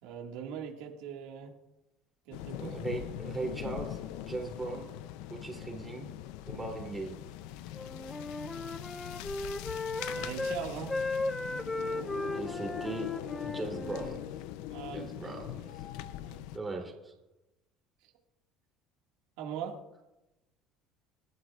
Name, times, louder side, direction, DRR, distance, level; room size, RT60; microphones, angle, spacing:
voice 1, 0.0-1.5 2.3-2.8 10.2-11.0 14.7-16.4 18.0-18.1 19.4-19.8, right 7 dB, 85° right, 1 dB, 1.8 m, -41 dB
sound 1, 2.3-16.6, left 13 dB, 80° left, 0.5 m, -42 dB
voice 2, 2.6-4.9 5.3-6.1 6.5-7.2 12.3-13.1 13.4-14.3 14.9-15.6 16.5-17.1, right 3 dB, 15° right, 0 dB, 3.1 m, -38 dB
Wind instrument woodwind instrument, 7.7-10.6 10.9-14.2, left 2 dB, 10° left, 0.5 m, -36 dB
25.5 x 11.5 x 2.4 m, 1.0 s
cardioid pair, 140°, 0 cm